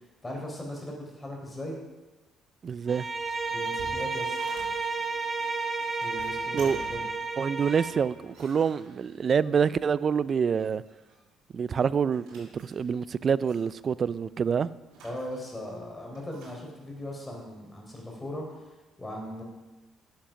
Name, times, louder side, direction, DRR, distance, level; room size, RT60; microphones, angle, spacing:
voice 1, 0.2-1.8 3.5-4.4 6.0-7.0 15.0-18.7 19.0-19.4, left 1 dB, 20° left, 3.9 m, -38 dB
voice 2, 2.6-3.1 6.5-6.8 7.4-10.8 11.5-14.7, right 6 dB, 45° right, 0.4 m, -26 dB
Bowed string instrument, 2.9-8.1, right 4 dB, 30° right, 1.1 m, -32 dB
sound 1, 3.4-5.0 5.8-7.2 7.6-9.4 10.4-11.2 11.5-13.1 13.4-13.7 14.9-15.7 16.1-16.6, right 2 dB, 75° right, 4.3 m, -50 dB
10.0 x 7.4 x 5.9 m
supercardioid pair, 75°, 0 cm